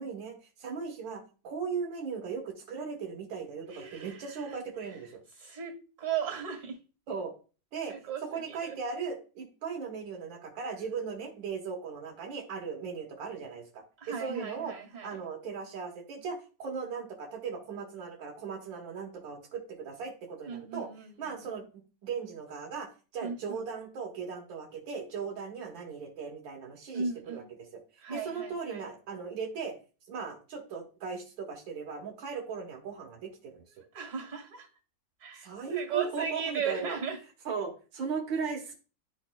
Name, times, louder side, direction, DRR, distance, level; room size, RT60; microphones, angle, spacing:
voice 1, 0.0-5.2 7.1-7.3 7.7-7.9 8.2-13.8 14.2-14.7 15.0-20.9 21.2-21.6 22.0-27.8 28.1-29.8 30.1-33.6 35.4-37.0 37.5-38.7, right 5 dB, 90° right, 2 dB, 1.9 m, -38 dB
voice 2, 3.7-4.6 4.9-5.0 5.4-6.8 7.9-8.8 14.0-15.2 20.4-21.4 23.2-23.4 26.9-27.5 28.0-28.8 33.8-34.7 35.2-37.2, right 7 dB, 40° right, 2 dB, 2.4 m, -37 dB
12.0 x 4.1 x 2.2 m, 0.35 s
omnidirectional pair, 2.0 m